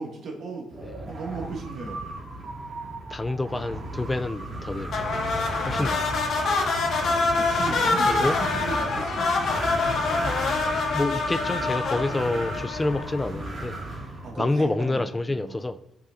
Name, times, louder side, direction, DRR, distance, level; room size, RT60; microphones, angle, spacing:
voice 1, 0.0-0.8 1.1-2.0 5.7-5.9 7.3-9.5 14.2-15.6, right 3 dB, 65° right, 2.4 m, -36 dB
Wind, 0.7-14.3, right 2 dB, 45° right, 2.6 m, -35 dB
voice 2, 3.1-5.2 5.6-6.1 8.1-8.4 10.9-13.8 14.4-15.8, left 2 dB, 15° left, 0.4 m, -28 dB
sound 1, 4.9-13.4, left 3 dB, 65° left, 1.6 m, -26 dB
12.5 x 6.0 x 2.9 m
cardioid pair, 90°, 0 cm